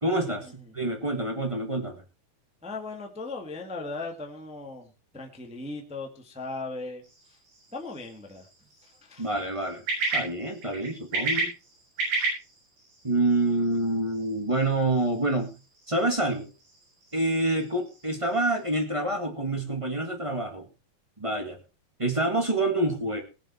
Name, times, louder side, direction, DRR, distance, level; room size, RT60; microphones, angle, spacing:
voice 1, 0.0-2.0 9.2-9.8 10.1-11.5 13.0-15.5 15.9-16.5 17.1-20.6 21.2-21.6 22.0-23.2, right 2 dB, 20° right, 4 dB, 0.7 m, -27 dB
voice 2, 2.6-7.0 7.7-8.5 9.0-9.3, left 3 dB, 5° right, 2 dB, 1.1 m, -37 dB
sound 1, 7.0-18.7, right 3 dB, 85° right, 9.0 m, -35 dB
19.5 x 7.6 x 4.4 m, 0.31 s
omnidirectional pair, 4.2 m